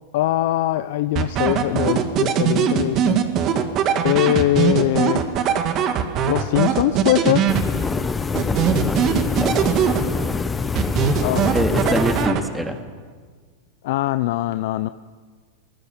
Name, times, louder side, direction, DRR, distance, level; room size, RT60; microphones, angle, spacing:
voice 1, 0.1-3.2 4.0-5.3 6.3-7.4 11.2-11.5 13.8-14.9, left 15 dB, 65° left, 12 dB, 0.7 m, -21 dB
sound 1, 1.2-8.0 8.3-10.4 10.8-12.8, right 8 dB, 40° right, 2.1 m, -21 dB
sound 2, 7.5-12.5, left 4 dB, 15° left, 1.0 m, -25 dB
voice 2, 8.5-9.1 9.4-9.7 11.5-12.8, right 1 dB, 5° right, 5 dB, 2.3 m, -25 dB
23.5 x 20.0 x 7.4 m, 1.6 s
hypercardioid pair, 120°, 0 cm